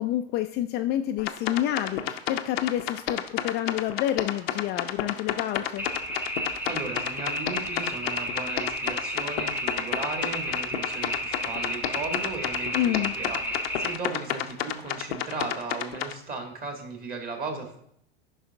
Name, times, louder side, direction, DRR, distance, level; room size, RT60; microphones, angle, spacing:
voice 1, 0.0-5.9 12.7-13.2, left 13 dB, 35° left, 7 dB, 0.4 m, -28 dB
sound 1, 1.2-16.1, left 10 dB, 70° left, 0.7 m, -30 dB
sound 2, 5.8-14.0, equal, 5° right, 1.1 m, -32 dB
voice 2, 6.7-17.8, right 4 dB, 30° right, 3 dB, 1.9 m, -36 dB
9.8 x 5.6 x 3.5 m, 0.71 s
hypercardioid pair, 90°, 31 cm